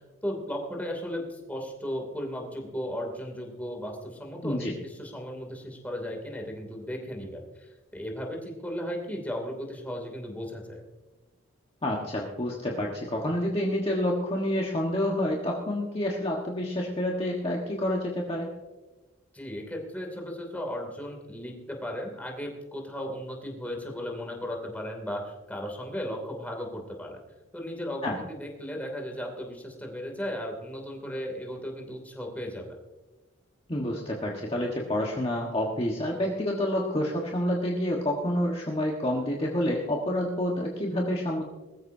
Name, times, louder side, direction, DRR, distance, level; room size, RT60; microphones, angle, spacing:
voice 1, 0.0-10.8 19.3-27.2 27.5-32.6, equal, 10° left, 1 dB, 2.7 m, -36 dB
voice 2, 4.4-4.7 11.8-18.5 28.0-28.2 33.7-41.4, left 1 dB, 25° left, -2 dB, 1.4 m, -28 dB
21.0 x 14.0 x 2.7 m, 1.2 s
head